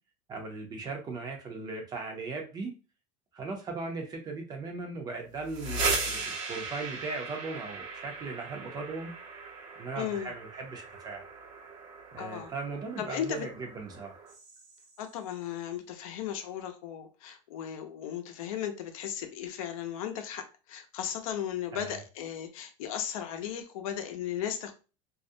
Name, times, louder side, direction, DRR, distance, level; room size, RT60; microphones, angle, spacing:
voice 1, 0.3-2.7 3.3-9.1 9.8-11.2 12.1-13.5 13.7-14.2 21.7-22.0, right 3 dB, 25° right, 2 dB, 0.5 m, -38 dB
sound 1, 5.3-15.1, right 3 dB, 65° right, 0.9 m, -38 dB
voice 2, 10.0-10.3 12.2-12.5 13.0-13.5 15.0-24.7, left 9 dB, 85° left, 6 dB, 0.6 m, -36 dB
2.4 x 2.1 x 2.6 m, 0.33 s
supercardioid pair, 150°, 17 cm